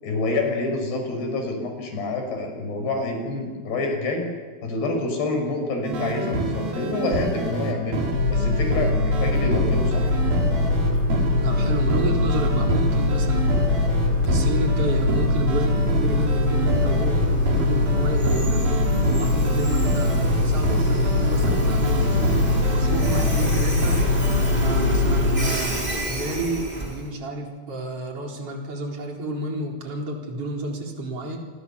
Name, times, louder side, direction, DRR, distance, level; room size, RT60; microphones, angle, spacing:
voice 1, 0.0-4.3 4.6-8.0 8.3-10.1, left 2 dB, 85° left, 3 dB, 7.6 m, -27 dB
sound 1, 5.8-24.5, right 2 dB, 70° right, 5.8 m, -28 dB
sound 2, 8.1-25.5, left 3 dB, 60° left, 5.9 m, -22 dB
Train, 8.3-27.1, right 1 dB, 10° right, 4.2 m, -30 dB
voice 2, 11.4-13.5 14.3-18.8 19.1-22.0 22.7-24.0 24.6-31.4, right 2 dB, 35° right, 0 dB, 4.9 m, -30 dB
29.5 x 25.0 x 7.1 m, 1.4 s
omnidirectional pair, 4.5 m